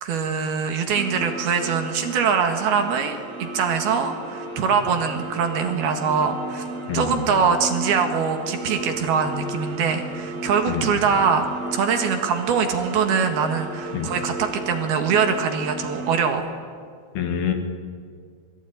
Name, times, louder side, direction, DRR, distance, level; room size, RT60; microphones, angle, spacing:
voice 1, 0.0-6.6 6.9-11.5 11.7-16.4, right 6 dB, 65° right, 5 dB, 3.6 m, -23 dB
sound 1, 0.9-16.3, right 2 dB, 40° right, 3.7 m, -34 dB
voice 2, 6.9-7.2 10.7-10.8 13.9-14.1 17.2-17.5, left 8 dB, 65° left, 5 dB, 3.7 m, -26 dB
26.5 x 22.0 x 9.5 m, 2.1 s
omnidirectional pair, 5.0 m